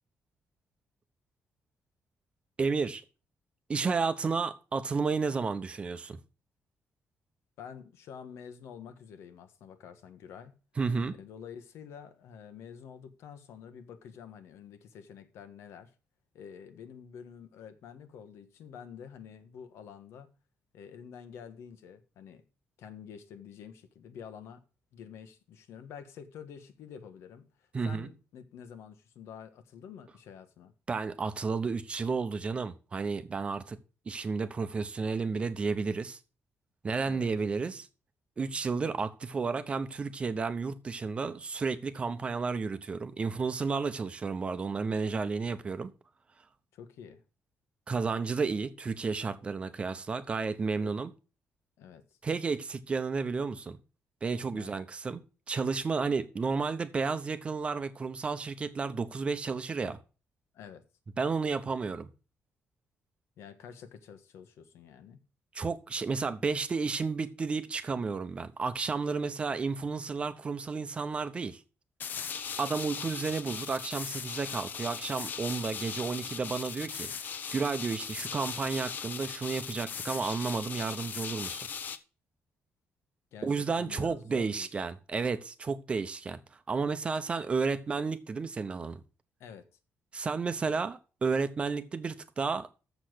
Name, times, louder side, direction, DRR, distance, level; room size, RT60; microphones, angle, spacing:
voice 1, 2.6-3.0 3.7-6.2 10.8-11.1 27.7-28.1 30.9-33.8 34.1-36.2 36.8-37.9 38.4-45.9 47.9-51.1 52.2-53.8 54.2-60.0 61.2-62.1 65.5-71.6 72.6-77.1 77.5-81.7 83.4-86.4 86.7-89.0 90.1-92.7, right 4 dB, 25° right, 0.8 m, -32 dB
voice 2, 7.6-10.5 11.1-15.9 16.3-20.3 20.7-22.4 22.8-24.6 24.9-30.7 37.0-37.3 46.7-47.2 50.8-51.0 51.8-52.0 54.5-54.8 60.5-60.8 63.4-65.2 83.3-84.7 89.4-89.7, left 7 dB, 90° left, 1.4 m, -48 dB
sound 1, 72.0-82.0, left 7 dB, 45° left, 0.8 m, -39 dB
7.1 x 6.5 x 7.8 m
cardioid pair, 170°, 4 cm